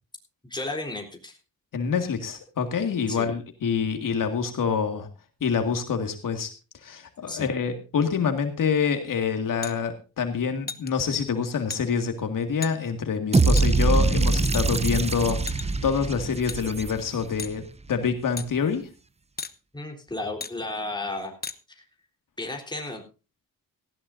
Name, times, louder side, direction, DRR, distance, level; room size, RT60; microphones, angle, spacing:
voice 1, 0.5-1.4 3.1-3.3 7.3-7.5 19.7-21.4 21.7-21.9 22.4-23.0, left 2 dB, 15° left, 2 dB, 3.8 m, -33 dB
voice 2, 1.7-5.1 5.4-6.5 6.8-18.9, left 6 dB, 70° left, 6 dB, 2.1 m, -26 dB
sound 1, 9.6-9.8 10.7-10.9 11.7-11.8 12.6-12.7 13.6-13.7 14.5-15.0 15.5-15.8 16.5-16.6 17.4-17.6 18.4-18.5 19.4-19.5 20.4-20.5 21.4-21.6, left 5 dB, 30° left, 0.9 m, -35 dB
sound 2, 13.3-17.4, right 3 dB, 20° right, 0.7 m, -23 dB
17.5 x 15.5 x 2.6 m, 0.33 s
wide cardioid pair, 135°, 34 cm